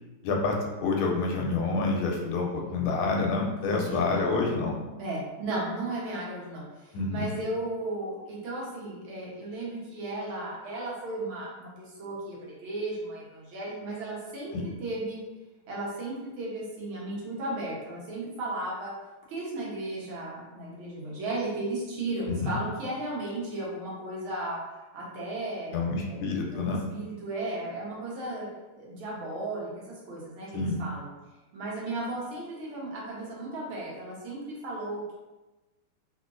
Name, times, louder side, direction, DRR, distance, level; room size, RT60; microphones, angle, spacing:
voice 1, 0.2-0.5 0.8-4.7 6.9-7.2 14.5-14.6 22.3-22.5 25.7-26.8 30.5-30.8, left 3 dB, 80° left, 1 dB, 1.4 m, -28 dB
voice 2, 3.6-4.3 4.8-14.5 14.8-15.2 15.7-18.9 19.3-24.6 24.9-25.7 26.0-26.2 26.5-28.5 28.7-31.1 31.5-35.1, right 2 dB, 75° right, -5 dB, 1.7 m, -35 dB
3.8 x 2.5 x 2.4 m, 1.1 s
omnidirectional pair, 2.3 m